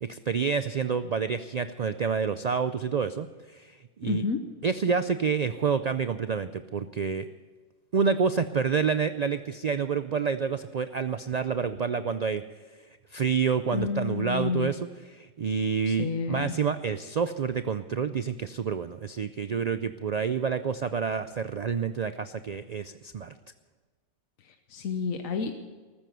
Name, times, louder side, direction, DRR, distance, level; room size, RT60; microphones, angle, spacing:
voice 1, 0.0-4.2 4.6-7.3 7.9-12.4 13.1-14.8 15.2-23.3, right 6 dB, 85° right, 11 dB, 0.3 m, -28 dB
voice 2, 4.0-4.4 13.7-14.7 15.9-16.5 24.4-25.5, left 5 dB, 85° left, 6 dB, 1.4 m, -30 dB
14.0 x 13.5 x 6.8 m, 1.4 s
omnidirectional pair, 1.4 m